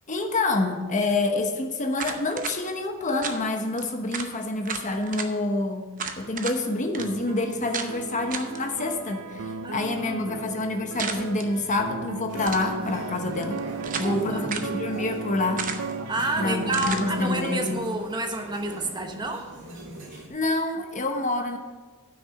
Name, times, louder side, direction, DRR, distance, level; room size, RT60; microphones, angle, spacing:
voice 1, 0.1-13.6 14.0-15.7 16.4-17.8 20.1-21.6, left 2 dB, 35° left, 5 dB, 1.0 m, -27 dB
sound 1, 2.0-2.6 3.2-3.4 3.8-3.9 4.1-4.3 4.7-5.3 6.0-6.6 6.9-7.1 7.7-7.9 8.3-8.6 11.0-11.5 12.3-12.7 13.4-14.2 14.5-14.7 15.6-16.0 16.7-17.1, right 6 dB, 40° right, 0.7 m, -33 dB
sound 2, 7.0-17.7, right 3 dB, 75° right, 0.5 m, -36 dB
voice 2, 9.6-10.6 13.9-14.5 16.1-19.5, right 2 dB, 20° right, 4 dB, 1.0 m, -30 dB
sound 3, 12.3-20.3, right 1 dB, 60° right, 2.4 m, -40 dB
9.4 x 6.1 x 6.4 m, 1.3 s
head